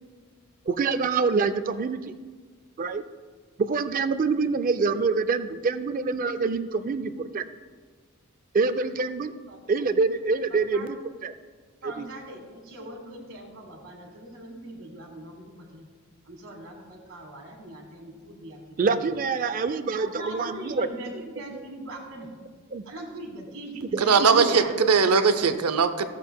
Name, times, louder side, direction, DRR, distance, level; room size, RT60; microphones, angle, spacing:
voice 1, 0.7-2.0 2.8-3.0 3.6-7.4 8.5-9.3 9.7-11.0 11.2-11.3 11.8-12.1 18.8-20.9 21.5-21.6 22.7-22.8 23.9-24.9, right 4 dB, 40° right, 11 dB, 0.4 m, -26 dB
voice 2, 10.5-10.9 11.8-15.8 16.2-18.6 18.9-19.0 19.9-22.3 22.8-24.7, right 1 dB, 60° right, 1 dB, 1.6 m, -41 dB
voice 3, 24.0-26.1, right 5 dB, 85° right, 10 dB, 0.6 m, -20 dB
15.5 x 7.2 x 2.2 m, 1.5 s
head